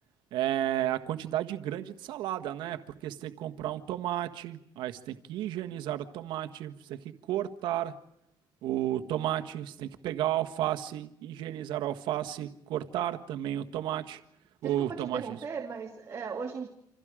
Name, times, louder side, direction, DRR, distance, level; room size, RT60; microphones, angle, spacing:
voice 1, 0.3-8.0 8.6-14.2 14.6-15.2, right 12 dB, 85° right, 1.6 m, -32 dB
voice 2, 14.6-16.7, right 5 dB, 35° right, 2.4 m, -37 dB
28.5 x 27.0 x 5.1 m
cardioid pair, 120°, 8 cm